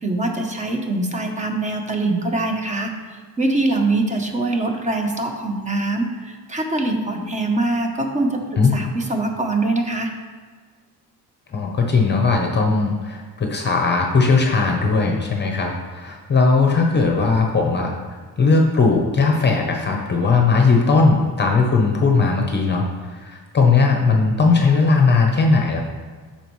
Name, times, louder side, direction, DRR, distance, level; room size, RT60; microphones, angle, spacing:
voice 1, 0.0-10.1, right 2 dB, 20° right, 3 dB, 0.8 m, -23 dB
voice 2, 11.5-17.9 18.4-25.8, left 4 dB, 30° left, 1 dB, 0.8 m, -18 dB
12.5 x 4.4 x 3.1 m, 1.5 s
cardioid pair, 140°, 38 cm